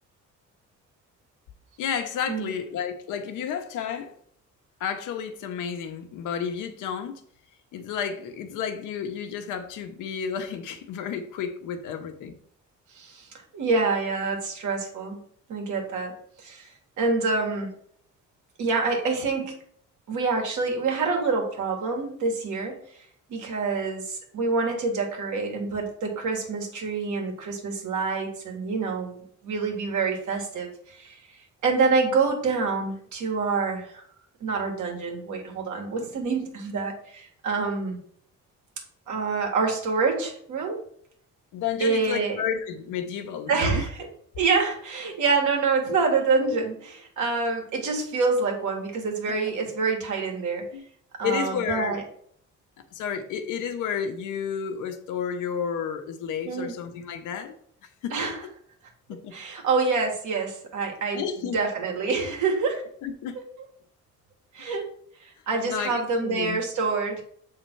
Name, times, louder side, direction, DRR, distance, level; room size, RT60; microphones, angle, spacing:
voice 1, 1.8-4.1 4.8-7.2 7.7-12.3 41.5-43.8 50.7-50.8 51.2-52.0 52.9-57.5 58.0-58.1 59.1-59.3 61.1-61.6 63.0-63.4 65.6-66.7, left 7 dB, 90° left, 0.9 m, -31 dB
voice 2, 12.9-13.3 13.5-15.2 15.5-17.7 18.6-19.5 20.1-29.1 29.4-31.4 31.6-34.0 34.4-38.0 39.1-40.8 41.8-42.4 43.5-44.0 44.4-50.7 51.2-52.0 56.5-56.7 58.1-58.4 59.3-62.8 64.5-64.9 65.2-67.2, right 4 dB, 75° right, 1.9 m, -27 dB
6.8 x 3.7 x 4.5 m
cardioid pair, 90°, 30 cm